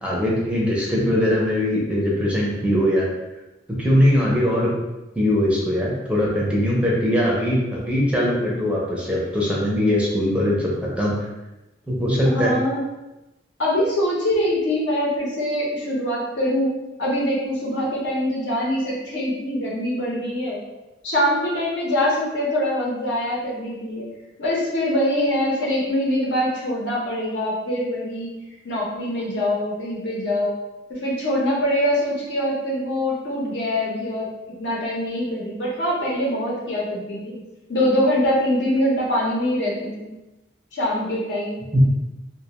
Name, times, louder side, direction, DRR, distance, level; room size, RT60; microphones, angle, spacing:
voice 1, 0.0-3.1 3.7-4.7 5.2-11.2 11.9-12.5 41.7-41.8, equal, 5° right, -4 dB, 0.4 m, -21 dB
voice 2, 12.2-12.8 13.6-16.7 17.0-20.6 21.0-24.1 24.4-28.4 28.6-30.5 30.9-34.3 34.6-37.4 37.7-40.1 40.7-41.6, left 1 dB, 70° left, -4 dB, 0.7 m, -23 dB
2.4 x 2.1 x 2.8 m, 1.0 s
head